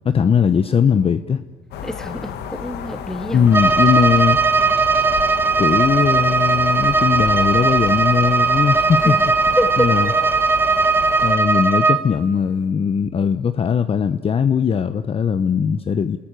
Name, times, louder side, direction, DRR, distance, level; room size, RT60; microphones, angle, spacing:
voice 1, 0.0-1.4 3.3-4.4 5.6-9.3 9.8-10.1 11.2-16.2, left 7 dB, 35° left, 0.8 m, -19 dB
sound 1, 1.7-11.3, left 8 dB, 75° left, 1.9 m, -32 dB
voice 2, 1.8-3.5 9.0-9.2 9.6-9.9, equal, 5° left, 3.1 m, -26 dB
Bowed string instrument, 3.5-12.1, right 4 dB, 15° right, 1.6 m, -18 dB
29.0 x 20.0 x 9.0 m
cardioid pair, 110°, 17 cm